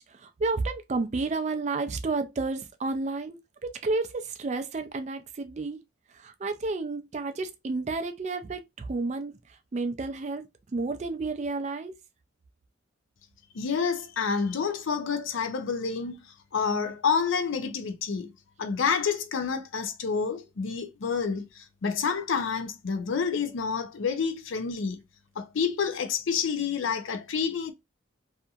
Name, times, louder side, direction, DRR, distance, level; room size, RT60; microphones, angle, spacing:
voice 1, 0.0-5.8 6.1-10.4 10.7-11.9, right 3 dB, 35° right, 0.4 m, -31 dB
voice 2, 13.5-16.2 16.5-18.3 18.6-25.0 25.4-27.7, left 6 dB, 85° left, 0.5 m, -28 dB
2.7 x 2.5 x 2.3 m
head